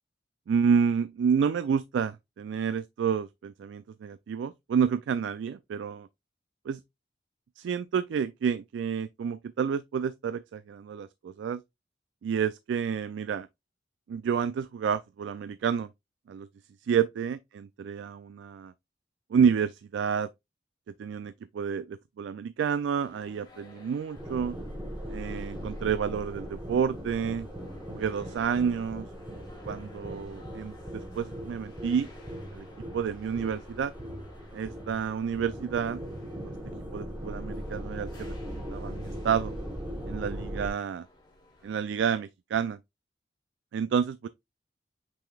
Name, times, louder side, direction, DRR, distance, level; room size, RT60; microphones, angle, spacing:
voice 1, 0.5-6.1 6.7-6.8 7.6-11.6 12.2-13.5 14.1-15.9 16.3-16.5 16.9-18.7 19.3-20.3 21.0-24.6 25.1-27.5 27.9-29.1 29.7-32.1 32.5-32.7 32.9-33.9 34.5-36.0 36.4-36.5 36.9-39.5 40.1-41.1 41.6-42.8 43.7-44.3, right 7 dB, 80° right, 0.3 m, -29 dB
sound 1, 23.0-41.8, left 2 dB, 25° left, 1.5 m, -55 dB
sound 2, 24.2-40.7, equal, 15° right, 1.0 m, -39 dB
5.8 x 3.8 x 2.3 m
head